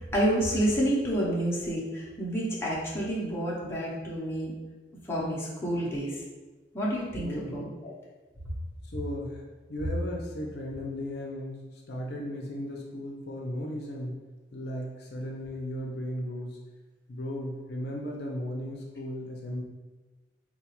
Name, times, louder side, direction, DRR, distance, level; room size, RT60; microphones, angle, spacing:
voice 1, 0.1-4.5 5.0-6.2 6.7-7.9, right 1 dB, 15° left, -6 dB, 0.7 m, -29 dB
voice 2, 7.2-7.6 8.9-9.4 9.7-14.2 14.5-16.6 17.1-19.6, left 1 dB, 60° left, -1 dB, 0.5 m, -36 dB
3.8 x 2.3 x 2.9 m, 1.2 s
head